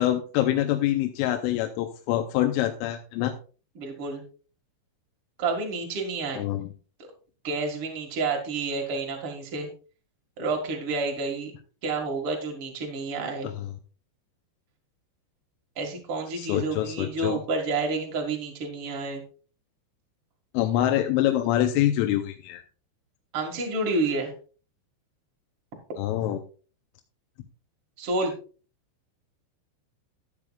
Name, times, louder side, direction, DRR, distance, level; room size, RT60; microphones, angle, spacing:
voice 1, 0.0-3.3 6.4-6.7 13.4-13.7 16.4-17.4 20.5-22.6 26.0-26.4, left 13 dB, 85° left, 5 dB, 3.2 m, -25 dB
voice 2, 3.7-4.2 5.4-6.4 7.4-9.7 10.4-11.5 11.8-13.5 15.7-19.2 23.3-24.3 28.0-28.3, right 3 dB, 85° right, 2 dB, 1.2 m, -29 dB
12.5 x 9.6 x 2.3 m, 0.37 s
omnidirectional pair, 5.7 m